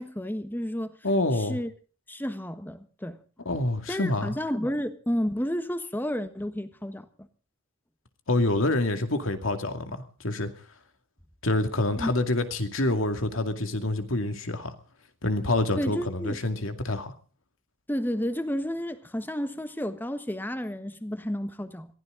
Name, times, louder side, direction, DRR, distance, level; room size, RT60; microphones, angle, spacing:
voice 1, 0.0-1.0 1.3-1.7 2.1-3.2 3.9-7.3 12.0-12.1 15.8-16.4 17.9-21.9, equal, 10° left, 1.3 m, -31 dB
voice 2, 1.0-1.6 3.5-4.3 8.3-10.5 11.4-14.7 15.2-17.1, left 2 dB, 85° left, 2.3 m, -27 dB
22.5 x 15.5 x 3.9 m
head